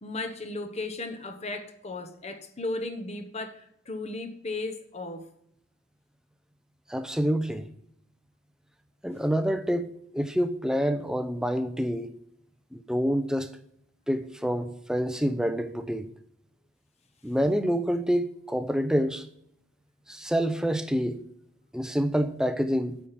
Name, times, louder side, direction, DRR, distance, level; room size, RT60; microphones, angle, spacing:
voice 1, 0.0-5.3, left 2 dB, 30° left, 0.9 m, -35 dB
voice 2, 6.9-7.7 9.0-9.9 10.1-12.1 12.7-13.5 14.1-16.1 17.2-19.3 20.1-21.2 21.7-23.0, equal, 5° right, 0.5 m, -27 dB
8.5 x 5.7 x 7.2 m
head